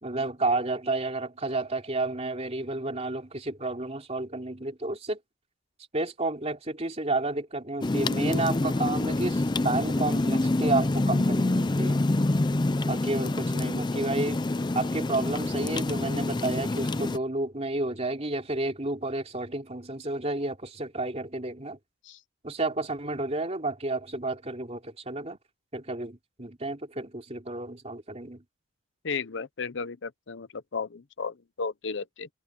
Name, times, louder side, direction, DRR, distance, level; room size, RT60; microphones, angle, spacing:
voice 1, 0.0-5.2 5.9-12.0 12.8-14.4 14.7-21.8 22.4-25.4 25.7-28.4, right 2 dB, 30° right, 3.2 m, -31 dB
sound 1, 7.8-17.2, left 2 dB, 20° left, 0.5 m, -26 dB
voice 2, 29.0-32.3, left 5 dB, 60° left, 0.7 m, -34 dB
head